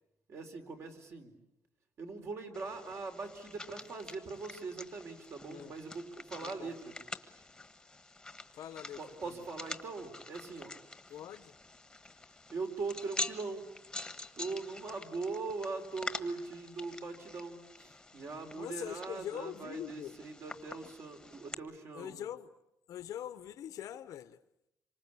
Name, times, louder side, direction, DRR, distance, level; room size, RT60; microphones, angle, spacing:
voice 1, 0.3-1.3 2.0-6.9 9.0-10.8 11.1-11.2 12.5-13.7 14.3-22.2, right 4 dB, 45° right, 4.2 m, -41 dB
sound 1, 2.5-21.5, left 2 dB, 10° left, 1.5 m, -46 dB
voice 2, 6.4-6.8 8.5-9.0 9.2-9.5 11.1-11.5 18.5-20.2 21.9-22.6 22.9-24.4, left 11 dB, 65° left, 1.0 m, -43 dB
27.5 x 25.0 x 8.6 m
cardioid pair, 165°, 6 cm